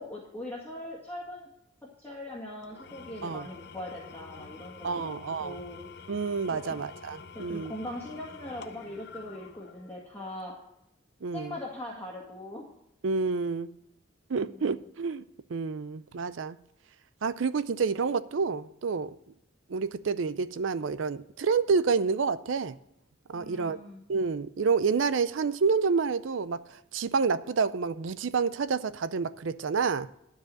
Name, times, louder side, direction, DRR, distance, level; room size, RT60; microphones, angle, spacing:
voice 1, 0.0-1.5 2.0-5.8 6.5-6.8 7.4-10.5 11.3-12.6 14.3-14.6 23.3-24.0, left 1 dB, 10° left, 1.9 m, -41 dB
Engine / Tools, 2.6-10.1, left 5 dB, 60° left, 0.8 m, -48 dB
voice 2, 4.8-5.6 6.1-7.7 11.2-11.6 13.0-13.7 14.3-15.2 15.5-16.6 17.2-19.2 19.7-22.7 23.3-23.8 24.1-30.1, right 5 dB, 75° right, 0.5 m, -28 dB
12.5 x 4.8 x 7.6 m
head